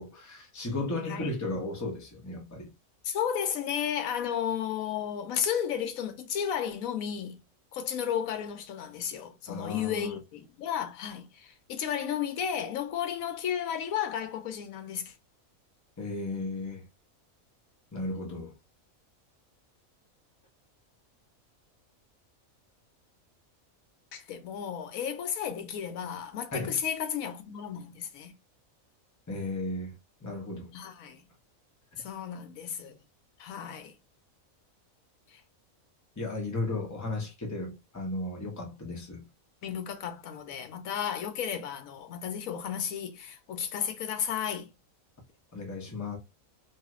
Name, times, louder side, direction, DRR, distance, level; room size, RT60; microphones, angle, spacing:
voice 1, 0.0-2.7 9.5-10.1 16.0-16.9 17.9-18.5 26.5-26.8 29.3-29.9 30.2-30.7 36.2-39.3 45.5-46.2, left 2 dB, 15° left, 0.6 m, -35 dB
voice 2, 3.0-7.4 7.7-15.1 24.1-28.3 30.7-31.2 32.0-33.0 33.4-33.9 35.3-35.4 39.6-44.7, left 8 dB, 80° left, 1.1 m, -33 dB
2.6 x 2.4 x 3.0 m
omnidirectional pair, 1.5 m